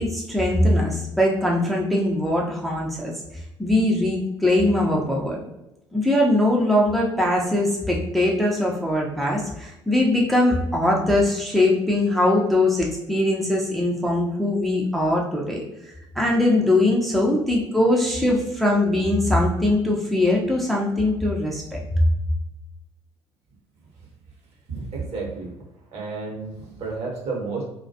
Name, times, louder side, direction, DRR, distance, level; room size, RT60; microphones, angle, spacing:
voice 1, 0.0-3.1 3.6-5.4 5.9-15.6 16.2-22.0, left 1 dB, ahead, -3 dB, 0.5 m, -21 dB
voice 2, 24.7-25.6 25.9-27.6, right 4 dB, 50° right, -2 dB, 0.9 m, -31 dB
2.2 x 2.2 x 2.6 m, 0.91 s
figure-of-eight pair, 55°, 14 cm